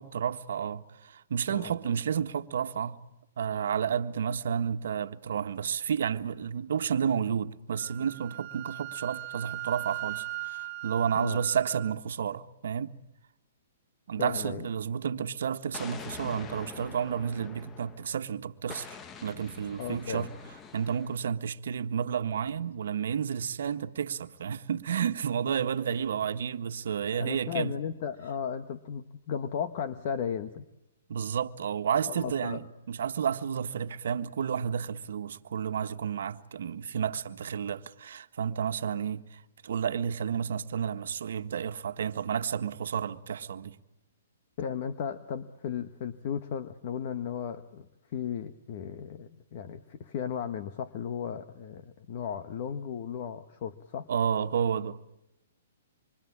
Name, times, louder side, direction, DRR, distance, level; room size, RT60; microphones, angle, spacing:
voice 1, 0.0-3.0 3.4-12.9 14.1-18.9 19.2-20.3 20.7-27.7 31.1-43.8 54.1-55.0, right 7 dB, 70° right, 1.5 m, -31 dB
Wind instrument woodwind instrument, 7.8-12.0, right 17 dB, 40° right, 1.3 m, -39 dB
voice 2, 14.2-14.7 19.8-20.3 27.2-30.6 32.0-32.6 44.6-47.9 48.1-54.1, left 7 dB, 45° left, 1.3 m, -35 dB
Explosion, 15.7-18.2 18.7-21.3, left 6 dB, 20° left, 0.9 m, -45 dB
26.5 x 25.0 x 8.6 m
hypercardioid pair, 160°, 0 cm